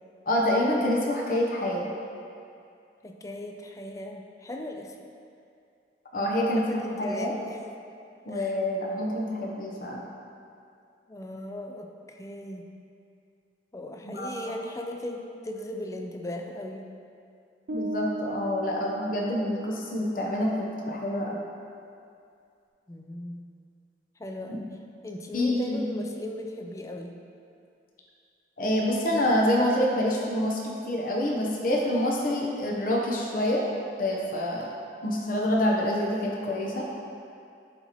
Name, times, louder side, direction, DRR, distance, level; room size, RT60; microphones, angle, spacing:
voice 1, 0.3-1.9 6.1-7.3 8.3-10.1 14.0-14.3 17.7-21.4 24.5-24.6 25.3-26.0 28.6-30.6 30.9-33.6 34.0-34.7 35.0-36.9, left 1 dB, 50° left, -2 dB, 0.8 m, -27 dB
voice 2, 3.0-4.9 6.6-7.6 8.3-8.6 8.9-9.0 11.1-12.7 13.7-16.9 22.9-23.4 24.2-24.7 25.0-27.2 34.6-34.7, left 1 dB, 20° left, 3 dB, 0.4 m, -38 dB
sound 1, 17.7-19.9, right 1 dB, 60° right, 0.5 m, -36 dB
12.0 x 4.1 x 3.0 m, 2.5 s
head